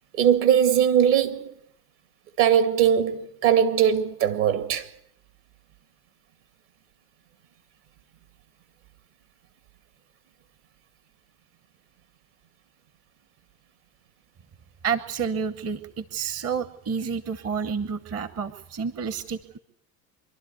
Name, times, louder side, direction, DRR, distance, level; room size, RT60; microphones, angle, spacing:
voice 1, 0.1-1.5 2.4-4.9, right 9 dB, 60° right, 2.4 m, -20 dB
voice 2, 14.8-19.6, right 6 dB, 30° right, 1.0 m, -29 dB
25.5 x 12.0 x 9.4 m
hypercardioid pair, 85°, 47 cm